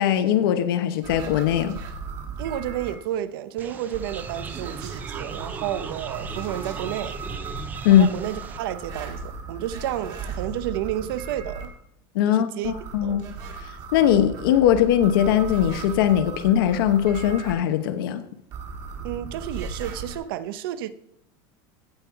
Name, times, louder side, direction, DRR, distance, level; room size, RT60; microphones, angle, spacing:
voice 1, 0.0-1.8 7.8-8.1 12.1-13.2 13.6-18.2, left 10 dB, 75° left, 0.8 m, -20 dB
sound 1, 1.0-3.0 3.9-11.7 12.6-17.5 18.5-20.2, right 4 dB, 35° right, 1.8 m, -37 dB
voice 2, 2.4-7.2 7.9-11.7 12.3-12.7 13.0-13.2 19.0-20.9, right 12 dB, 75° right, 0.8 m, -31 dB
sound 2, 3.6-8.6, right 5 dB, 15° right, 0.5 m, -38 dB
16.0 x 5.5 x 4.7 m
supercardioid pair, 180°, 12 cm